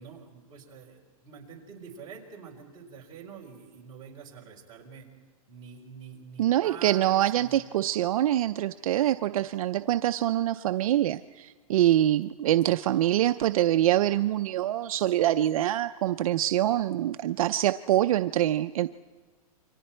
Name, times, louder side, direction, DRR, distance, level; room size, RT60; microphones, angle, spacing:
voice 1, 0.0-5.1 5.5-7.6, right 6 dB, 20° right, -2 dB, 4.3 m, -46 dB
voice 2, 6.4-18.9, right 13 dB, 65° right, 10 dB, 0.6 m, -25 dB
29.0 x 24.0 x 4.4 m, 1.4 s
supercardioid pair, 165°, 19 cm